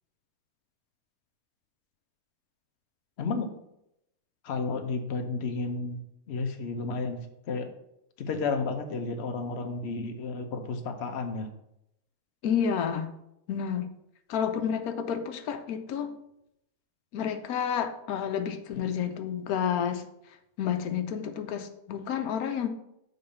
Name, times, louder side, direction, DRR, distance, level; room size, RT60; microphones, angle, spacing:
voice 1, 3.2-3.5 4.4-7.2 7.5-7.7 8.2-11.5, left 4 dB, 55° left, 5 dB, 1.0 m, -32 dB
voice 2, 12.4-13.1 13.5-13.9 14.3-16.2 17.1-20.0 20.6-22.7, left 8 dB, 90° left, 8 dB, 1.1 m, -30 dB
6.7 x 3.9 x 5.5 m, 0.81 s
omnidirectional pair, 1.5 m